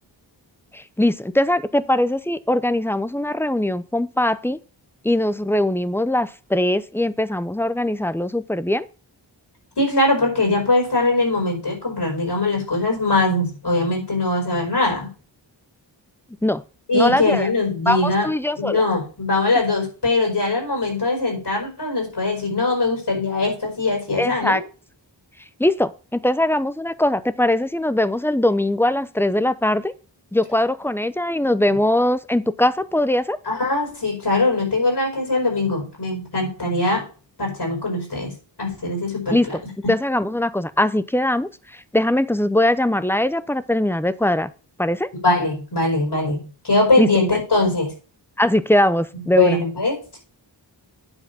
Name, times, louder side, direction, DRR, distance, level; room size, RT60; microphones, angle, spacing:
voice 1, 0.7-4.6 5.0-8.9 16.4-16.6 16.9-17.5 17.9-18.8 24.2-24.6 25.6-29.9 30.3-33.4 39.3-39.6 39.9-44.5 44.8-45.1 47.0-47.1 48.4-49.6, left 1 dB, 5° left, 14 dB, 0.5 m, -21 dB
voice 2, 9.8-15.1 16.9-18.3 18.6-24.6 33.5-37.1 37.4-38.3 38.6-39.4 45.2-47.9 49.3-50.2, left 2 dB, 65° left, 0 dB, 5.1 m, -21 dB
9.8 x 4.0 x 6.9 m, 0.36 s
wide cardioid pair, 75°, 44 cm